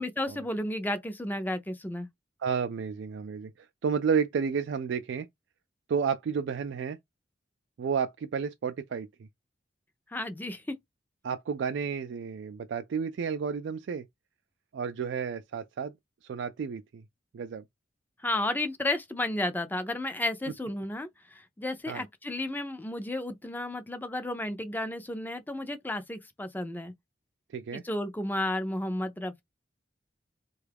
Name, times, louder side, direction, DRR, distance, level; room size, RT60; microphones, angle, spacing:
voice 1, 0.0-2.1 10.1-10.8 18.2-26.9 27.8-29.4, left 1 dB, 10° left, 0.4 m, -32 dB
voice 2, 2.4-5.3 5.9-7.0 7.8-9.1 11.2-14.1 14.7-15.9 16.2-17.0 17.3-17.6 21.9-22.0 27.5-27.8, right 6 dB, 75° right, 0.3 m, -31 dB
3.5 x 2.3 x 3.4 m
head